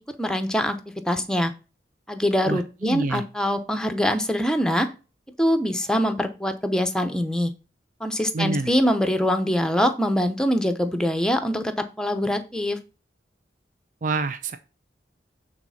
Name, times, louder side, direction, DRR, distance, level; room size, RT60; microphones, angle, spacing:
voice 1, 0.2-0.8 1.0-1.5 2.1-4.9 5.4-7.5 8.0-12.8, equal, 5° left, 0.8 m, -23 dB
voice 2, 2.5-3.2 8.3-8.7 14.0-14.6, right 3 dB, 45° right, 0.6 m, -27 dB
8.8 x 4.1 x 5.7 m
head